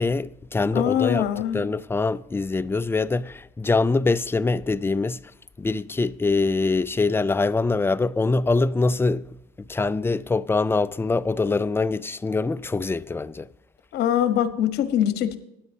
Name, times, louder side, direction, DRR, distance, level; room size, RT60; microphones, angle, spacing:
voice 1, 0.0-1.3 1.5-5.2 5.6-9.3 9.7-13.5, left 3 dB, 15° left, 0.4 m, -24 dB
voice 2, 0.7-1.7 13.9-15.4, left 10 dB, 75° left, 1.2 m, -23 dB
16.0 x 10.5 x 2.8 m
cardioid pair, 110°, 17 cm